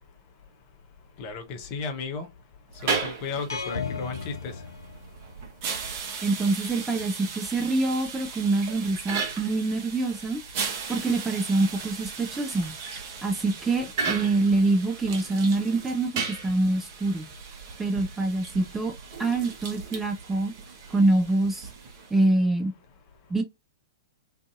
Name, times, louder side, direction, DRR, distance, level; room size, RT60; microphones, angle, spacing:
voice 1, 1.2-2.3 2.8-4.5, left 4 dB, 35° left, 0.7 m, -34 dB
sound 1, 2.7-22.3, right 5 dB, 40° right, 0.7 m, -36 dB
sound 2, 3.5-5.5, left 5 dB, 80° left, 0.5 m, -35 dB
voice 2, 6.2-10.4 10.9-12.7 13.2-17.3 17.8-18.9 19.2-20.5 20.9-21.7 22.1-22.7 23.3-23.4, right 2 dB, 10° right, 0.4 m, -25 dB
2.5 x 2.5 x 2.4 m
figure-of-eight pair, 110°, 2 cm